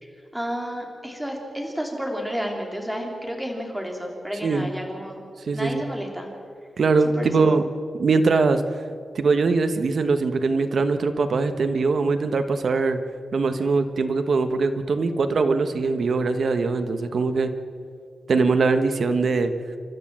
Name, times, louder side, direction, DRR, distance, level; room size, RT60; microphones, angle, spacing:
voice 1, 0.0-5.2 5.5-6.3 7.0-7.5, equal, 5° right, 1 dB, 3.3 m, -31 dB
voice 2, 5.5-5.8 6.8-7.6 8.0-8.6 9.1-13.0 13.3-17.5 18.3-19.5, right 4 dB, 60° right, 8 dB, 1.3 m, -22 dB
29.0 x 12.5 x 7.6 m, 2.3 s
wide cardioid pair, 130°, 0 cm